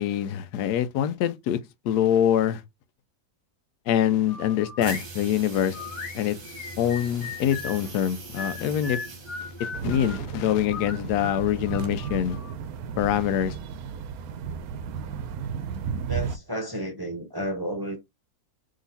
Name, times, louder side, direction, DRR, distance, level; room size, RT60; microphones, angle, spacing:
voice 1, 0.0-1.6 1.8-2.6 3.9-5.8 6.1-6.4 6.8-9.0 9.6-12.4 13.0-13.5, left 10 dB, 90° left, 1.2 m, -24 dB
sound 1, 4.3-5.1 5.7-7.8 8.4-10.2 10.7-12.5, left 5 dB, 65° left, 1.4 m, -37 dB
sound 2, 4.8-10.4, right 3 dB, 40° right, 1.0 m, -42 dB
sound 3, 9.7-16.4, right 6 dB, 75° right, 1.0 m, -34 dB
voice 2, 16.1-18.0, right 1 dB, 20° right, 0.6 m, -32 dB
3.9 x 3.0 x 4.0 m
omnidirectional pair, 1.6 m